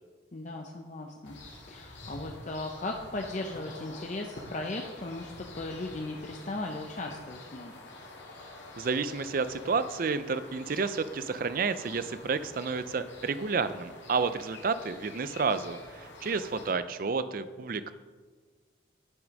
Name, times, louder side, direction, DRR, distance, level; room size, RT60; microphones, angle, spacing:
voice 1, 0.3-1.4 1.7-7.8, left 2 dB, 40° left, 2 dB, 0.6 m, -37 dB
sound 1, 1.2-16.7, left 2 dB, 75° left, 2.1 m, -47 dB
voice 2, 8.8-17.9, right 4 dB, 50° right, 13 dB, 0.4 m, -30 dB
10.5 x 6.1 x 5.2 m, 1.4 s
head